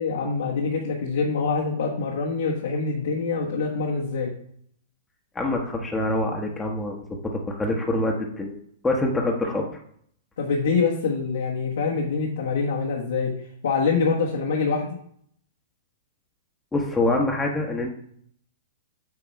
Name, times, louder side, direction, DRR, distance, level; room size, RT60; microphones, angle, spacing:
voice 1, 0.0-4.3 10.4-13.4 13.6-15.0, left 4 dB, 75° left, -2 dB, 1.4 m, -25 dB
voice 2, 5.3-8.6 8.8-9.8 16.7-17.9, left 2 dB, 10° left, -1 dB, 1.0 m, -25 dB
8.6 x 3.0 x 4.6 m, 0.64 s
hypercardioid pair, 115°, 0 cm